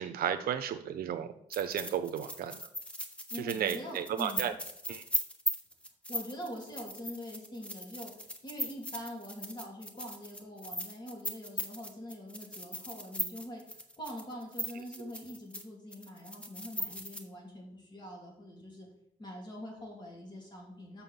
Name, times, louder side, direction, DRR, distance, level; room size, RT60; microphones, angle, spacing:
voice 1, 0.0-2.5 3.4-4.5 4.9-5.0, right 9 dB, 90° right, 9 dB, 0.6 m, -33 dB
sound 1, 1.5-15.6 15.9-17.2, left 1 dB, 10° left, 0.9 m, -38 dB
voice 2, 3.3-4.6 6.1-18.9 19.2-21.0, equal, 30° left, -2 dB, 3.0 m, -44 dB
6.0 x 5.7 x 7.0 m, 0.70 s
wide cardioid pair, 130°, 15 cm